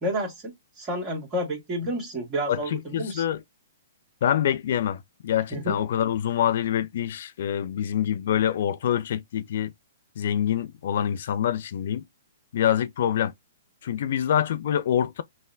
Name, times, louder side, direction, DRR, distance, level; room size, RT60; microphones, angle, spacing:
voice 1, 0.0-3.2 5.5-5.8, equal, 25° right, 1.5 m, -30 dB
voice 2, 2.5-3.4 4.2-9.7 10.2-12.0 12.5-13.3 13.8-15.2, left 10 dB, 55° left, 0.4 m, -25 dB
5.6 x 2.1 x 2.5 m
figure-of-eight pair, 120°, 0 cm